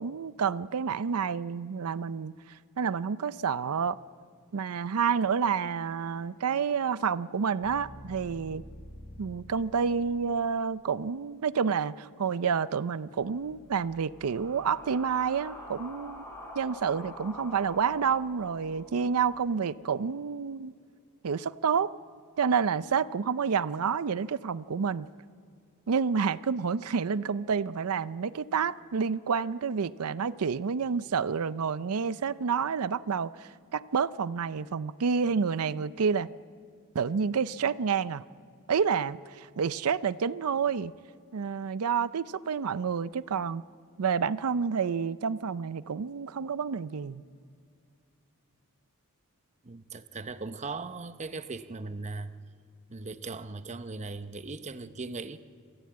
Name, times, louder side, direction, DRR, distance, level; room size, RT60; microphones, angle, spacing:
voice 1, 0.0-4.0 4.5-8.6 9.2-16.3 16.5-20.7 21.2-21.9 22.4-25.1 25.9-36.3 36.9-38.2 38.7-40.9 41.3-43.6 44.0-47.2, right 6 dB, 85° right, 0.5 m, -29 dB
sound 1, 6.4-10.5, equal, 40° left, 4.8 m, -49 dB
sound 2, 13.2-19.3, left 1 dB, 10° left, 5.7 m, -46 dB
voice 2, 49.6-52.3 52.9-55.4, right 3 dB, 35° right, 0.7 m, -38 dB
26.5 x 15.0 x 8.7 m
head